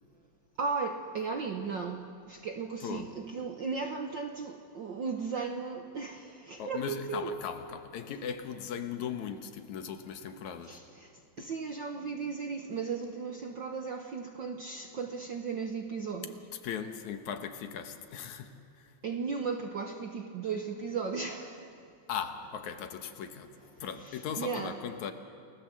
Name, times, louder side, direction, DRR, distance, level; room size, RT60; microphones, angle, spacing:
voice 1, 0.6-7.3 10.7-11.1 11.4-16.4 19.0-21.7 24.0-24.8, right 5 dB, 60° right, 1.2 m, -36 dB
voice 2, 6.6-10.8 11.4-11.5 16.6-18.9 22.1-25.1, left 7 dB, 75° left, 2.6 m, -38 dB
29.0 x 19.5 x 7.6 m
omnidirectional pair, 3.4 m